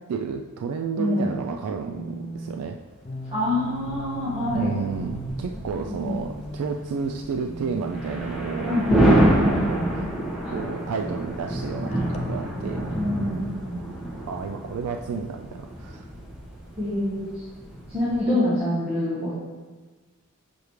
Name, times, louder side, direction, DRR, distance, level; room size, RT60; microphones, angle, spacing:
voice 1, 0.1-2.8 4.5-9.8 10.5-12.9 13.2-13.6 14.3-16.1, right 5 dB, 85° right, 4 dB, 0.3 m, -31 dB
voice 2, 1.0-1.4 3.3-4.7 5.8-6.2 8.7-10.1 10.4-10.5 11.8-13.8 16.8-17.4 17.9-19.3, left 1 dB, 25° right, -9 dB, 1.2 m, -26 dB
sound 1, 1.2-1.5 1.9-2.6 3.1-5.5 6.1-10.1 11.9-12.2, right 2 dB, 30° left, 0.4 m, -37 dB
sound 2, 2.0-2.1 3.2-18.2, right 1 dB, ahead, 1.0 m, -28 dB
6.9 x 4.9 x 3.1 m, 1.3 s
head